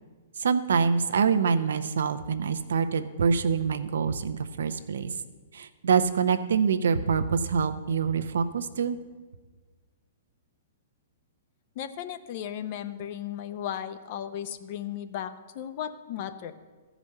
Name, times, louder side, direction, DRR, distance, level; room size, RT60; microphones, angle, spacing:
voice 1, 0.4-5.1 5.5-9.0, right 6 dB, 80° right, 10 dB, 0.7 m, -25 dB
voice 2, 11.8-16.5, left 10 dB, 50° left, 11 dB, 0.7 m, -35 dB
14.0 x 5.0 x 6.5 m, 1.4 s
hypercardioid pair, 130°, 0 cm